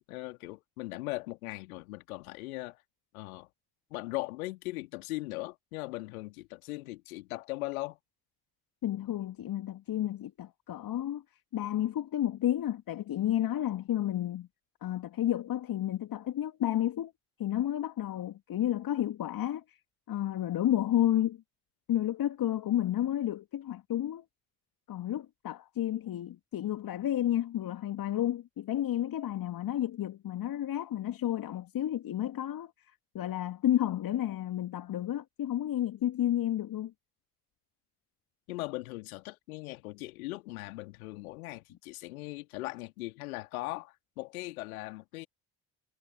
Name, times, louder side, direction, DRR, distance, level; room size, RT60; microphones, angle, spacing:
voice 1, 0.0-2.8 3.1-3.5 3.9-8.0 38.5-45.3, left 20 dB, 70° left, 2.9 m, -39 dB
voice 2, 8.8-11.2 11.5-14.5 14.8-17.1 17.4-19.8 20.1-21.4 21.9-24.2 24.9-32.7 33.1-36.9, left 12 dB, 50° left, 2.9 m, -31 dB
figure-of-eight pair, 45°, 44 cm